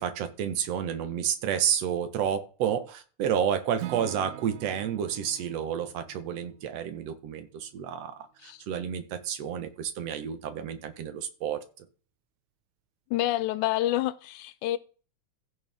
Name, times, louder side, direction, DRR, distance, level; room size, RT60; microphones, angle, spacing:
voice 1, 0.0-8.1 8.4-11.6, right 8 dB, 60° right, 2.2 m, -30 dB
Acoustic guitar / Strum, 3.8-7.8, right 16 dB, 80° right, 1.9 m, -44 dB
voice 2, 13.1-14.8, left 14 dB, 90° left, 2.1 m, -28 dB
15.0 x 6.7 x 3.6 m
omnidirectional pair, 3.4 m